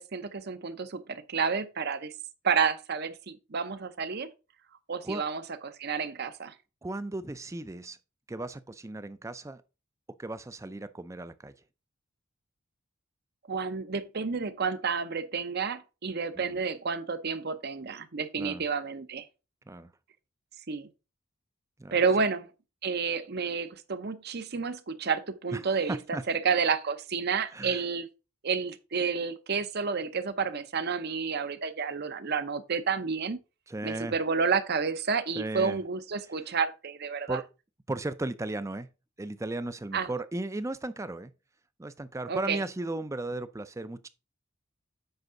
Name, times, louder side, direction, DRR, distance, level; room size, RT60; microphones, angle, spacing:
voice 1, 0.0-2.1 2.4-4.3 4.9-6.5 13.5-19.3 20.7-20.9 21.9-22.5 22.8-28.1 28.4-33.4 33.8-37.4 39.9-40.1 42.3-42.6, right 5 dB, 50° right, 0.7 m, -30 dB
voice 2, 6.8-8.0 8.3-9.6 10.2-11.5 16.4-16.6 18.4-18.7 19.7-19.9 21.8-22.0 25.5-25.6 25.9-26.2 27.5-27.9 33.7-34.2 35.4-35.8 36.3-36.4 37.3-37.5 37.9-38.9 39.2-41.3 41.8-44.1, right 2 dB, 15° right, 0.4 m, -36 dB
8.0 x 5.4 x 3.7 m
head